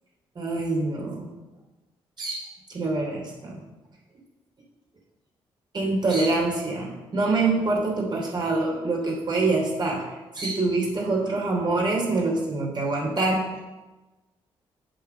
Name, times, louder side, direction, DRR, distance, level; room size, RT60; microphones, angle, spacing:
voice 1, 0.3-1.3 2.2-2.4 2.7-3.6 5.7-13.6, right 3 dB, 40° right, -2 dB, 3.1 m, -25 dB
8.1 x 4.1 x 6.8 m, 1.1 s
supercardioid pair, 55°, 11 cm